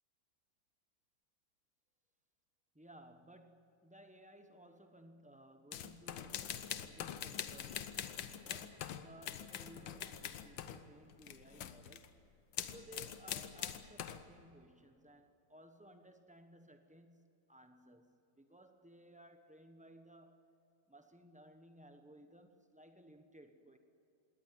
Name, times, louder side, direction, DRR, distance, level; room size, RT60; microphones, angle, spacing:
voice 1, 2.7-12.2 12.7-20.4 20.9-23.8, right 1 dB, 10° right, 7 dB, 0.3 m, -59 dB
sound 1, 5.7-10.8 11.1-12.1 12.5-14.2, left 10 dB, 75° left, 1.6 m, -44 dB
20.5 x 18.0 x 9.5 m, 2.8 s
omnidirectional pair, 2.1 m